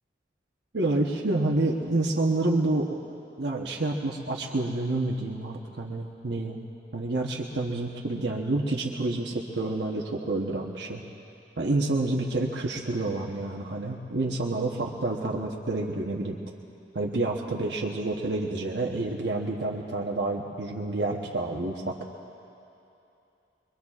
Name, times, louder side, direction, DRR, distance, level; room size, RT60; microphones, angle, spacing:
voice 1, 0.7-3.0 3.4-6.6 6.9-11.0 11.6-16.4 16.9-21.9, right 2 dB, 80° right, -2 dB, 1.0 m, -28 dB
24.0 x 23.0 x 2.4 m, 2.8 s
head